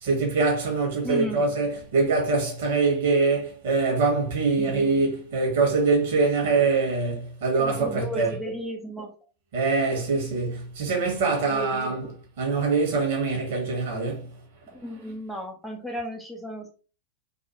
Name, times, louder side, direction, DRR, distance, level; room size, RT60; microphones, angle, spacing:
voice 1, 0.0-8.3 9.5-12.1 12.4-14.3, right 4 dB, 55° right, 1.2 m, -24 dB
voice 2, 1.0-1.5 4.6-4.7 7.5-9.1 11.5-12.1 14.7-16.7, equal, ahead, 0.5 m, -34 dB
2.6 x 2.3 x 2.8 m
figure-of-eight pair, 90°, 0 cm